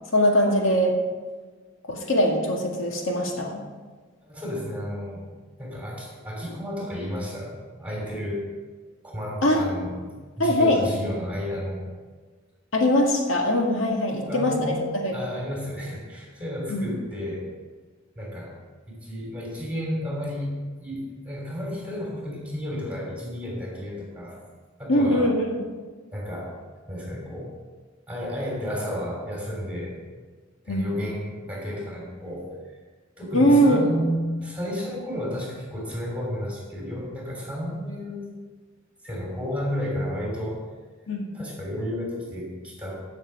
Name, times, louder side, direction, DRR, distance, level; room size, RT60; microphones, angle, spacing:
voice 1, 0.1-0.9 1.9-3.6 9.4-9.6 10.4-10.8 12.7-14.7 15.0-15.1 16.7-16.9 24.9-25.6 30.7-30.9 33.3-33.8 41.1-41.3, equal, 75° left, 0 dB, 2.1 m, -21 dB
voice 2, 4.2-5.3 5.6-8.5 9.0-10.0 10.4-11.9 14.1-17.5 18.1-18.6 18.9-24.4 24.8-25.3 26.1-26.5 26.9-27.6 28.1-30.0 30.6-32.6 33.2-38.3 39.0-40.6 41.3-43.0, equal, 5° right, -3 dB, 3.2 m, -32 dB
15.5 x 6.6 x 4.7 m, 1.4 s
head